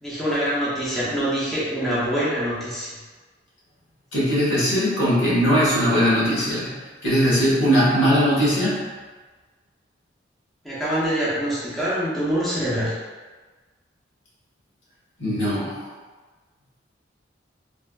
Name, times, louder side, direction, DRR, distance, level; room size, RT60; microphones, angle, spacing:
voice 1, 0.0-3.0 10.6-12.9, equal, ahead, -10 dB, 0.6 m, -25 dB
voice 2, 4.1-6.7 7.0-8.9 15.2-15.8, equal, 70° left, -8 dB, 1.2 m, -20 dB
3.3 x 2.4 x 2.2 m, 1.3 s
head